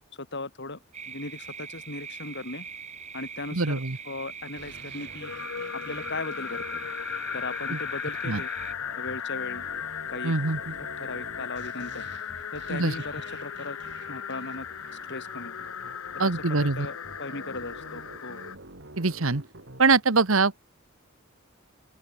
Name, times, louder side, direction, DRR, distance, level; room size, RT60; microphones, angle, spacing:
voice 1, 0.2-0.8 1.1-2.6 3.1-5.3 5.7-6.8 7.3-8.5 9.0-9.6 10.1-10.3 11.0-12.0 12.5-13.8 14.1-14.7 15.1-15.6 16.2-18.4, left 2 dB, 60° left, 5.0 m, -37 dB
sound 1, 0.9-8.7, right 6 dB, 35° right, 2.9 m, -42 dB
voice 2, 3.5-4.0 7.7-7.8 8.2-8.4 10.2-10.7 12.7-12.9 16.2-16.9 19.0-19.4 19.8-20.6, right 3 dB, 80° right, 1.4 m, -23 dB
sound 2, 4.6-20.0, right 2 dB, 60° right, 5.1 m, -48 dB
sound 3, 5.2-18.6, left 8 dB, 90° left, 0.7 m, -36 dB
open air
head